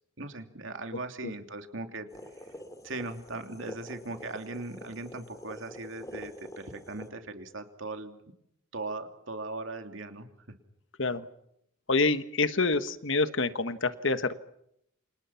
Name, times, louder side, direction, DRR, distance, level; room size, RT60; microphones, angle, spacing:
voice 1, 0.2-2.1 2.8-8.2 8.7-10.3, right 2 dB, 65° right, 6 dB, 2.9 m, -39 dB
sound 1, 2.1-7.1, equal, 15° left, 2.8 m, -46 dB
voice 2, 11.9-14.3, left 3 dB, 65° left, 11 dB, 1.4 m, -27 dB
29.0 x 27.5 x 5.9 m, 0.76 s
head